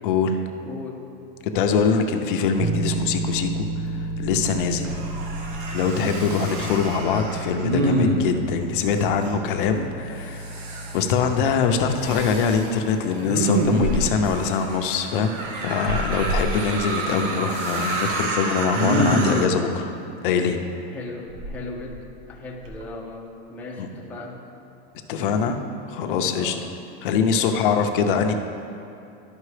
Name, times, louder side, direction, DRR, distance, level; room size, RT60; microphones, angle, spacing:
voice 1, 0.0-0.4 1.5-3.7 3.9-5.0 5.7-10.6 10.9-15.3 15.6-19.9 20.2-20.6 23.8-23.9 25.1-25.6 25.9-26.5 27.0-28.3, left 6 dB, 60° left, 5 dB, 0.7 m, -23 dB
voice 2, 0.6-1.1 20.9-24.4 26.3-26.8 27.3-27.8, left 2 dB, 5° left, -4 dB, 0.6 m, -38 dB
Bass guitar, 2.6-12.5, right 3 dB, 40° right, 0.5 m, -32 dB
Respiratory sounds, 3.5-3.6 4.0-4.6 4.8-5.6 5.9-6.9 7.6-8.4 12.0-12.7 13.2-14.3 15.9-16.5 17.5-18.2 18.7-19.5 21.3-22.2 22.6-22.8, right 1 dB, 80° right, 1.2 m, -25 dB
sound 1, 4.8-8.3 8.9-9.4 10.1-19.5, right 3 dB, 60° right, 1.1 m, -32 dB
12.5 x 5.3 x 3.3 m, 2.7 s
supercardioid pair, 160°, 29 cm